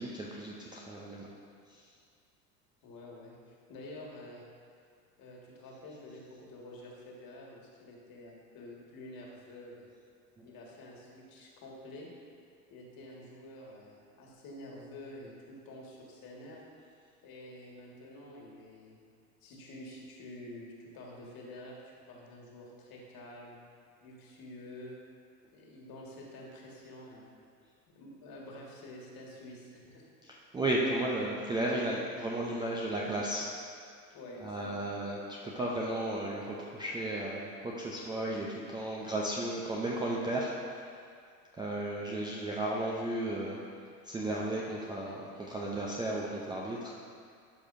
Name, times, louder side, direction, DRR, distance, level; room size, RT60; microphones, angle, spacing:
voice 1, 0.0-1.3 1.7-1.8 10.4-10.5 30.3-33.5 34.4-40.5 41.5-43.6 44.0-46.9, right 1 dB, 10° right, -4 dB, 0.4 m, -34 dB
voice 2, 2.8-4.4 5.2-9.9 10.4-12.1 12.7-16.6 17.2-19.0 19.4-23.6 24.0-25.0 25.5-27.4 27.9-30.1 34.1-35.1, left 1 dB, 45° left, -3 dB, 1.8 m, -48 dB
12.0 x 4.9 x 2.6 m, 2.2 s
hypercardioid pair, 95°, 50 cm